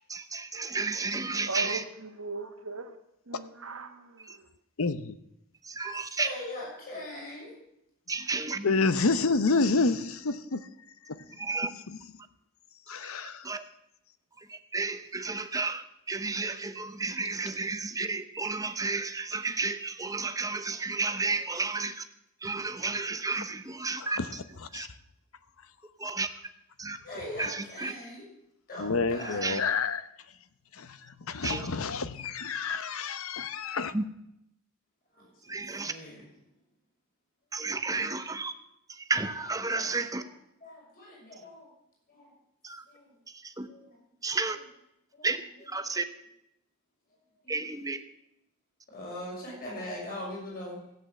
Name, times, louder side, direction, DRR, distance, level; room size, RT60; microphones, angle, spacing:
voice 1, 0.1-1.8 4.3-4.4 5.6-6.3 8.1-8.7 11.4-11.7 12.9-13.1 13.4-13.6 14.5-22.0 22.4-24.2 24.7-24.9 26.0-26.3 26.8-27.0 27.4-27.9 29.4-29.6 31.4-31.7 33.9-34.0 35.5-35.9 37.5-38.5 38.9-40.2 42.6-42.8 43.4-43.7 44.2-44.6 45.2-45.4 45.7-46.0 47.5-48.0, right 3 dB, 15° right, 0.9 m, -32 dB
voice 2, 1.5-3.0 3.3-4.5, right 3 dB, 65° right, 1.5 m, -38 dB
voice 3, 4.8-5.1 8.6-10.6 11.1-11.2 12.9-13.4 24.0-24.3 24.7-24.9 28.8-30.0 30.8-31.0 31.3-33.9, left 4 dB, 65° left, 0.8 m, -28 dB
voice 4, 5.9-7.5 21.2-21.4 27.0-28.2 28.7-29.6 35.1-36.3 39.3-40.3 40.6-41.7 42.1-42.3 42.9-43.1 43.6-44.0 44.5-44.6 45.1-45.3 45.6-45.7 47.4-47.6 48.9-50.8, left 1 dB, 45° left, 6.7 m, -41 dB
15.0 x 8.4 x 7.6 m
head